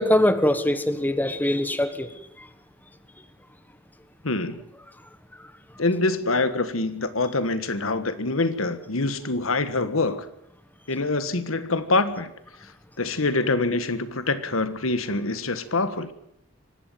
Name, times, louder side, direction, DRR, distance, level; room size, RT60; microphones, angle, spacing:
voice 1, 0.0-2.1, left 1 dB, 10° left, 10 dB, 1.3 m, -22 dB
voice 2, 4.2-4.6 5.8-10.3 10.9-12.3 12.6-12.7 13.0-16.1, left 3 dB, 85° left, 12 dB, 1.6 m, -25 dB
24.5 x 11.5 x 9.2 m, 0.78 s
head